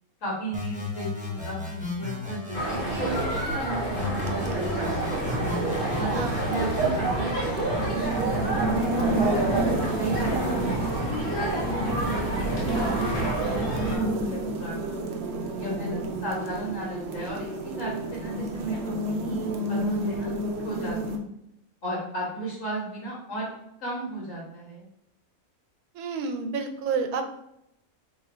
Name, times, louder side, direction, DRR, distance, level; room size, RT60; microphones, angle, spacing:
voice 1, 0.2-5.3 6.0-9.5 10.0-11.3 11.6-15.0 15.6-21.3 21.8-23.5 23.8-24.8, right 1 dB, 65° left, -5 dB, 1.3 m, -35 dB
sound 1, 0.5-3.5 3.9-7.0, left 3 dB, 10° right, 0.5 m, -34 dB
sound 2, 2.5-14.0, right 1 dB, 40° left, 1.3 m, -28 dB
sound 3, 4.1-21.2, right 2 dB, 65° right, 0.7 m, -31 dB
voice 2, 25.9-27.3, right 5 dB, 85° right, 5 dB, 1.1 m, -29 dB
3.0 x 2.5 x 4.2 m, 0.79 s
omnidirectional pair, 1.5 m